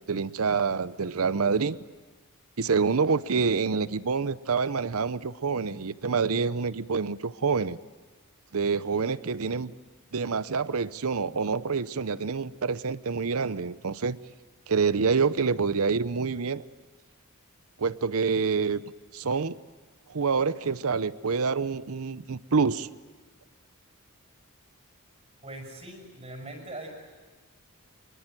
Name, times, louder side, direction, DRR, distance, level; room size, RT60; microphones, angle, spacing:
voice 1, 0.0-1.8 2.6-7.8 8.5-9.7 10.1-14.2 14.7-16.6 17.8-18.8 19.1-19.6 20.1-22.9, right 5 dB, 75° right, 17 dB, 0.7 m, -27 dB
voice 2, 25.4-26.9, right 2 dB, 30° right, 2 dB, 6.1 m, -41 dB
24.5 x 23.0 x 9.1 m, 1.3 s
head